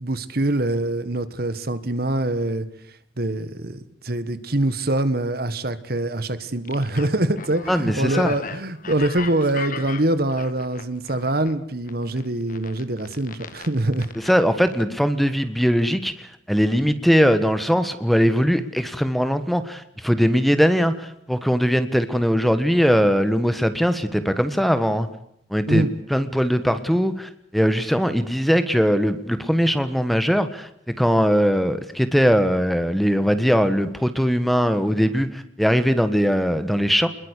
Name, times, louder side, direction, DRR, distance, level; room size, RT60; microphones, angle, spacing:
voice 1, 0.0-2.7 3.2-14.1 25.7-25.9, right 1 dB, 55° right, 13 dB, 1.6 m, -24 dB
sound 1, 6.6-11.5 11.9-14.3 14.7-14.8, left 5 dB, 45° left, 1.7 m, -36 dB
voice 2, 7.7-8.3 14.2-25.1 25.5-30.7 31.0-37.1, equal, ahead, 10 dB, 1.4 m, -20 dB
25.0 x 21.5 x 8.4 m, 0.72 s
head